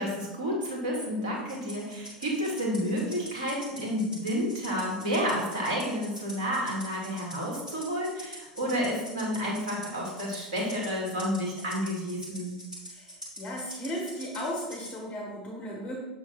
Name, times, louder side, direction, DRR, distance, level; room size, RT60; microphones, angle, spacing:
voice 1, 0.0-12.5, equal, 65° right, -3 dB, 2.0 m, -30 dB
Rattle (instrument), 1.5-15.0, equal, 85° right, 1.8 m, -44 dB
voice 2, 12.9-16.0, equal, 30° left, -2 dB, 1.6 m, -36 dB
7.3 x 3.6 x 4.2 m, 1.1 s
figure-of-eight pair, 75°, 4 cm